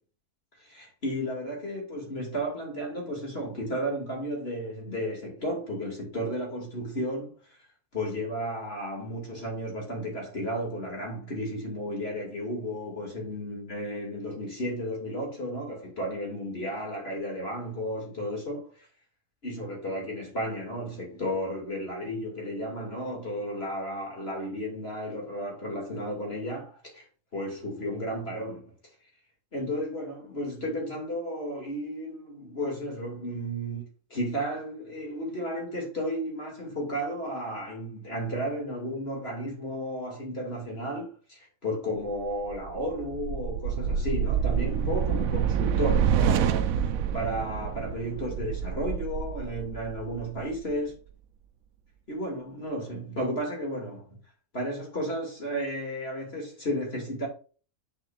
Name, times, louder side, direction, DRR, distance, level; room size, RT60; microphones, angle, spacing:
voice 1, 0.6-7.4 7.9-18.7 19.4-27.0 27.3-28.7 29.5-33.8 34.1-51.0 52.1-54.1 54.5-57.3, equal, 45° left, 2.9 m, -33 dB
sound 1, 42.3-50.7, right 8 dB, 80° right, 1.1 m, -27 dB
7.6 x 7.0 x 2.6 m
omnidirectional pair, 1.5 m